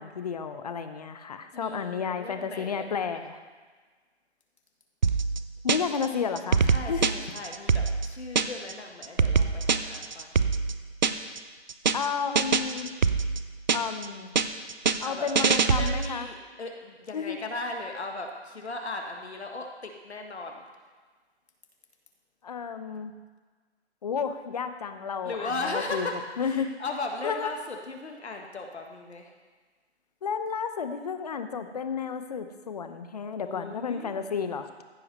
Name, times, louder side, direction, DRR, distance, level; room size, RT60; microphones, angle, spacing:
voice 1, 0.0-3.4 5.6-7.1 11.9-12.9 13.7-14.3 15.0-16.3 17.1-17.4 22.4-23.1 24.0-26.1 26.4-26.8 27.2-27.5 30.2-34.7, left 6 dB, 35° left, 9 dB, 0.7 m, -32 dB
voice 2, 1.5-3.2 5.7-5.9 6.7-10.3 15.0-20.6 25.2-29.3 33.4-34.2, left 3 dB, 70° left, 2 dB, 1.7 m, -37 dB
sound 1, 5.0-6.1 6.4-8.7 9.0-11.4 11.7-12.1 12.4-14.1 14.4-16.2, right 5 dB, 40° right, 0.5 m, -24 dB
15.0 x 5.6 x 5.5 m, 1.4 s
figure-of-eight pair, 150°, 34 cm